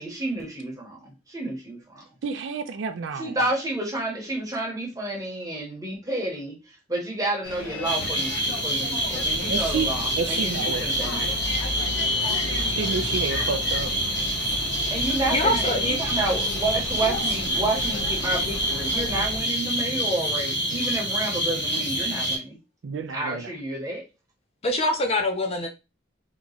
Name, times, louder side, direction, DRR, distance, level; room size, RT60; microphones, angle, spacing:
voice 1, 0.0-2.0 3.2-6.6 6.9-11.3 12.5-12.7 14.9-22.6 23.1-24.0, right 2 dB, 15° right, 1.0 m, -30 dB
voice 2, 2.2-3.3 9.5-9.9 10.2-10.8 12.8-13.9 22.8-23.5, right 5 dB, 65° right, 0.4 m, -29 dB
Bus, 7.4-19.4, left 2 dB, 75° left, 0.7 m, -34 dB
sound 1, 7.8-22.4, equal, 55° left, 1.6 m, -27 dB
voice 3, 15.3-16.4 17.0-17.2 24.6-25.7, left 1 dB, 30° left, 0.6 m, -25 dB
2.9 x 2.4 x 3.9 m
head